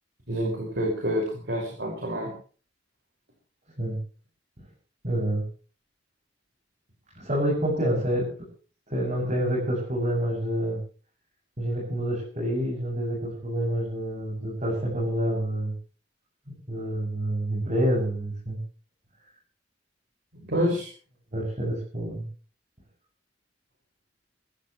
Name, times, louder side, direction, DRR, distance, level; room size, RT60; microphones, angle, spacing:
voice 1, 0.3-2.3 20.4-20.9, equal, 65° right, -1 dB, 5.5 m, -28 dB
voice 2, 5.0-5.4 7.1-8.3 8.9-10.8 11.6-15.7 16.5-18.6 20.7-20.8 21.3-22.2, right 1 dB, 40° right, -4 dB, 7.4 m, -27 dB
23.0 x 15.0 x 3.2 m, 0.41 s
head